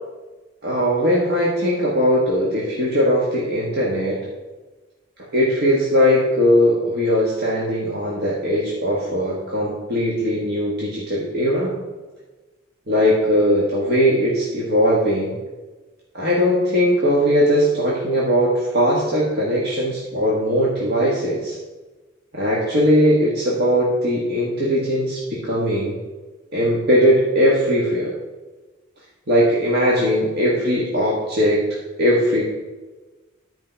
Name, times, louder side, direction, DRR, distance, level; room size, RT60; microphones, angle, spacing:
voice 1, 0.6-4.2 5.3-11.7 12.9-15.3 16.1-21.6 22.3-26.0 26.5-28.1 29.3-31.6 32.0-32.4, equal, 55° right, -5 dB, 1.5 m, -19 dB
10.5 x 4.8 x 5.7 m, 1.2 s
head